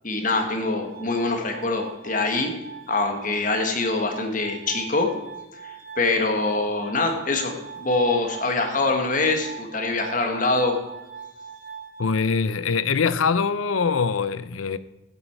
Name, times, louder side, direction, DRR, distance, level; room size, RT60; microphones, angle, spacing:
voice 1, 0.0-2.5 2.9-5.1 5.6-10.7, left 3 dB, 40° left, 1.7 m, -24 dB
Glass, 0.9-12.9, right 6 dB, 45° right, 0.9 m, -41 dB
voice 2, 12.0-14.8, left 5 dB, 85° left, 0.6 m, -23 dB
15.5 x 8.3 x 4.5 m
head